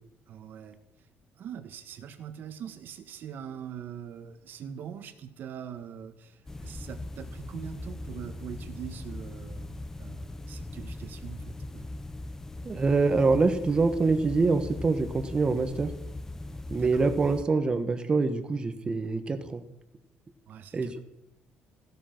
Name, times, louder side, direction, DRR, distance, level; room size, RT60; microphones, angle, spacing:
voice 1, 0.3-0.8 1.4-12.0 16.7-17.0 20.5-21.0, right 9 dB, 50° right, 9 dB, 1.6 m, -43 dB
sound 1, 6.5-17.4, left 2 dB, 10° left, 0.7 m, -40 dB
voice 2, 12.6-15.9 16.7-19.6 20.7-21.0, right 4 dB, 20° right, 10 dB, 1.2 m, -25 dB
15.5 x 13.0 x 6.0 m, 0.87 s
cardioid pair, 165°, 4 cm